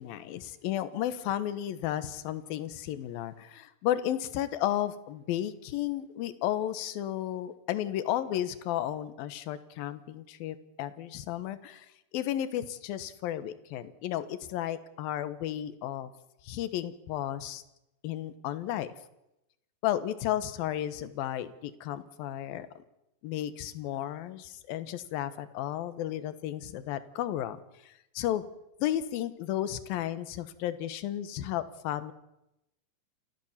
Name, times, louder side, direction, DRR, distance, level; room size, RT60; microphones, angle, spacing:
voice 1, 0.0-11.9 12.1-16.1 16.4-17.6 18.0-18.9 19.8-22.7 23.2-28.4 28.8-32.1, left 12 dB, 80° left, 14 dB, 2.9 m, -33 dB
28.5 x 14.0 x 7.2 m, 0.88 s
omnidirectional pair, 4.2 m